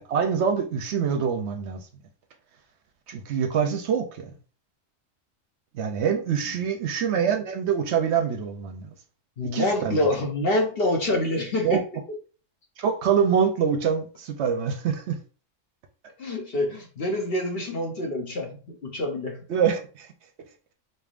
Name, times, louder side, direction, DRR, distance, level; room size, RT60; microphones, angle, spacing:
voice 1, 0.0-1.8 3.1-4.3 5.7-8.9 9.5-10.0 11.6-11.8 12.8-15.2 19.5-20.1, right 7 dB, 65° right, 0.8 m, -25 dB
voice 2, 9.4-11.8 16.2-19.4, left 1 dB, 55° left, 1.0 m, -26 dB
4.0 x 3.4 x 2.4 m
omnidirectional pair, 1.3 m